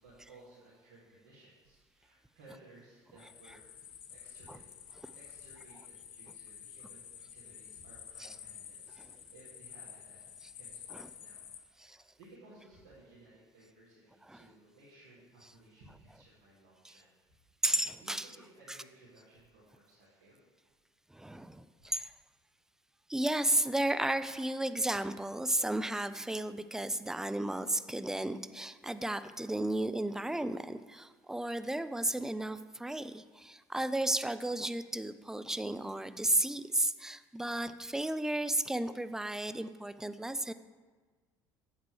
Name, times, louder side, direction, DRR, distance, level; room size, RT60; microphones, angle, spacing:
voice 1, 0.0-3.6 4.1-4.7 5.1-10.2 10.6-17.1 17.6-20.4, right 2 dB, 75° right, -8 dB, 2.1 m, -59 dB
sound 1, 3.2-11.6, left 8 dB, 55° left, 0.8 m, -50 dB
voice 2, 17.6-18.2 21.1-22.1 23.1-40.5, right 1 dB, 5° right, 12 dB, 0.4 m, -33 dB
8.3 x 7.4 x 3.2 m, 1.4 s
hypercardioid pair, 65°, 11 cm